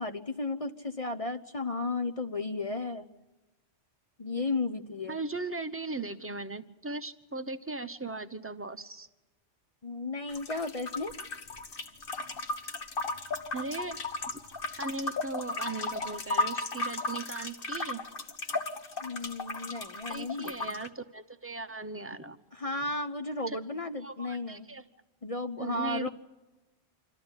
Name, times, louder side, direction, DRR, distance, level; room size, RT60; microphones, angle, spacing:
voice 1, 0.0-3.1 4.2-5.2 9.8-11.1 19.0-20.8 22.5-24.7 25.2-26.1, left 3 dB, 35° left, 8 dB, 0.8 m, -34 dB
voice 2, 5.1-9.1 13.5-14.0 14.8-18.0 20.1-22.4 23.5-23.6 24.0-24.8 25.6-26.1, right 3 dB, 10° right, 8 dB, 0.8 m, -38 dB
sound 1, 10.3-20.9, left 3 dB, 50° left, 1.4 m, -35 dB
26.5 x 14.0 x 9.7 m, 1.1 s
omnidirectional pair, 1.2 m